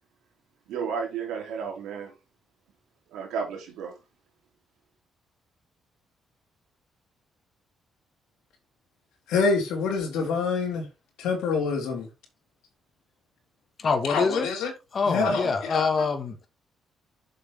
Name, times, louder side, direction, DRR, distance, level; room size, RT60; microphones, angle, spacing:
voice 1, 0.7-2.1 3.1-4.0, right 6 dB, 85° right, 3.2 m, -32 dB
voice 2, 9.3-10.9 11.2-12.1 14.1-14.7 15.1-15.9, left 4 dB, 90° left, 3.8 m, -26 dB
voice 3, 13.8-14.5 14.9-16.5, left 5 dB, 45° left, 2.2 m, -25 dB
7.4 x 6.8 x 3.8 m
cardioid pair, 90°, 0 cm